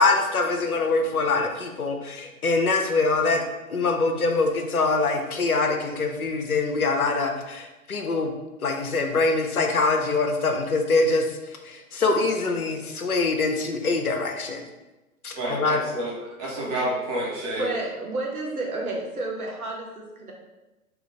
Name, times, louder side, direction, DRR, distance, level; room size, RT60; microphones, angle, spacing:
voice 1, 0.0-3.4 3.7-8.3 8.6-11.3 11.6-14.6 15.2-15.8, left 3 dB, 80° left, 4 dB, 0.7 m, -24 dB
voice 2, 15.3-16.1 16.4-17.7, right 1 dB, 25° right, -5 dB, 1.1 m, -29 dB
voice 3, 17.6-20.3, right 2 dB, 80° right, -1 dB, 1.0 m, -31 dB
3.9 x 2.4 x 3.2 m, 1.0 s
figure-of-eight pair, 105°, 43 cm